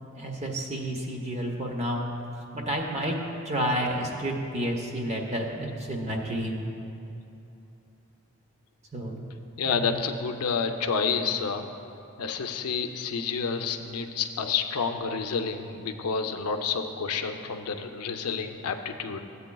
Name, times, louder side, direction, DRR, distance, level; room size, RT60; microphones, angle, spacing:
voice 1, 0.2-2.1 2.5-3.2 3.4-6.7 8.9-9.2 9.7-9.9, right 1 dB, 30° right, 1 dB, 0.8 m, -30 dB
voice 2, 9.6-11.7 12.2-19.2, left 5 dB, 85° left, 6 dB, 0.5 m, -29 dB
14.0 x 8.3 x 2.3 m, 2.8 s
head